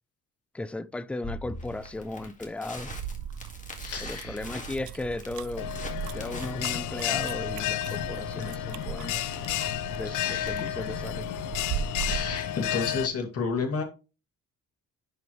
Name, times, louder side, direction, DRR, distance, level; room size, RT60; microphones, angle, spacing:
voice 1, 0.5-2.9 4.0-9.3 10.0-11.3, left 2 dB, 5° left, 0.4 m, -36 dB
Crackle, 1.2-13.2, left 2 dB, 25° left, 2.0 m, -45 dB
sound 1, 2.8-12.4, right 9 dB, 80° right, 0.6 m, -38 dB
voice 2, 3.8-4.4 10.1-10.7 12.0-13.8, left 5 dB, 50° left, 2.2 m, -32 dB
Bell, 5.6-13.1, left 12 dB, 85° left, 0.6 m, -32 dB
10.5 x 4.7 x 3.1 m
cardioid pair, 90°, 30 cm